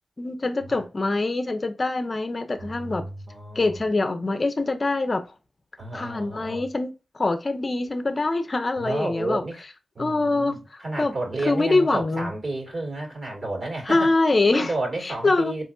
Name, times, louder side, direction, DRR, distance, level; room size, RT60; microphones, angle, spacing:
voice 1, 0.2-3.0 3.5-5.2 5.9-9.4 10.0-10.6 11.0-11.1 11.5-12.3 13.9-14.7 15.0-15.5, left 2 dB, 40° left, 0.7 m, -24 dB
voice 2, 2.6-3.8 5.8-6.7 8.8-9.6 10.0-14.1 14.5-15.7, right 2 dB, 55° right, 1.9 m, -32 dB
4.1 x 3.0 x 2.3 m
supercardioid pair, 40°, 0 cm